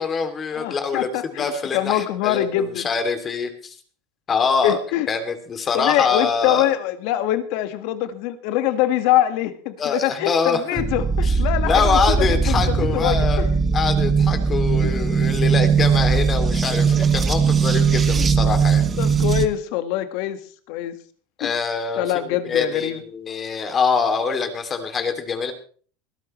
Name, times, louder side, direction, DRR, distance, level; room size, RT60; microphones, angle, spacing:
voice 1, 0.0-3.8 4.3-4.8 5.1-6.7 9.8-10.8 11.2-11.4 11.6-13.5 13.7-18.8 21.4-25.5, left 5 dB, 30° left, 7 dB, 2.7 m, -24 dB
voice 2, 0.5-2.9 4.6-5.1 5.7-13.5 14.8-15.0 18.1-18.3 19.0-20.4 20.7-20.9 21.4-21.5 22.0-23.0, left 13 dB, 65° left, 10 dB, 1.7 m, -24 dB
sound 1, 10.8-19.5, right 5 dB, 25° right, 1.6 m, -19 dB
22.5 x 12.5 x 3.2 m, 0.43 s
supercardioid pair, 110°, 0 cm